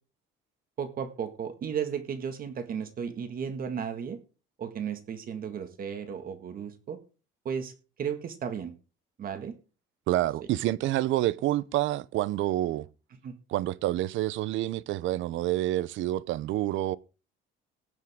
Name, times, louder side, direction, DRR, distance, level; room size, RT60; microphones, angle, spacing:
voice 1, 0.8-4.2 4.6-7.0 7.4-7.7 8.0-8.7 9.2-9.5 13.2-13.3, right 7 dB, 45° right, 1.8 m, -34 dB
voice 2, 10.1-12.9 13.5-17.0, right 15 dB, 65° right, 0.7 m, -28 dB
18.5 x 7.3 x 3.6 m
cardioid pair, 145°, 21 cm